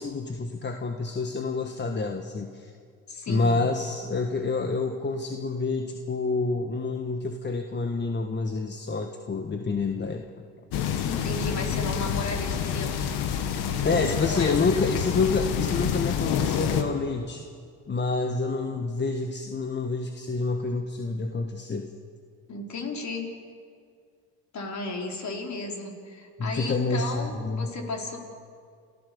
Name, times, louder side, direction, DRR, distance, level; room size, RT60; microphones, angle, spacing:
voice 1, 0.0-2.7 3.3-10.4 13.8-17.4 17.9-21.9 26.4-27.7, left 3 dB, 25° left, 5 dB, 1.5 m, -28 dB
voice 2, 3.1-3.7 11.0-14.7 22.5-23.3 24.5-28.2, left 3 dB, 40° left, 1 dB, 4.5 m, -34 dB
sound 1, 10.7-16.8, left 8 dB, 65° left, 2.1 m, -28 dB
28.0 x 15.0 x 7.1 m, 2.2 s
supercardioid pair, 85°, 41 cm